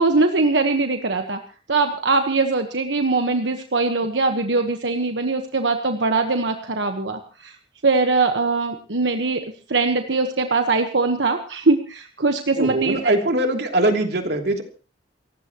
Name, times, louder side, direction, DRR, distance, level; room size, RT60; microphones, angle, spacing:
voice 1, 0.0-1.4 1.7-7.6 7.8-9.4 9.7-13.1, right 3 dB, 90° right, 6 dB, 1.3 m, -21 dB
voice 2, 12.5-14.6, right 1 dB, 65° right, 4 dB, 3.0 m, -21 dB
29.0 x 15.5 x 3.1 m, 0.36 s
head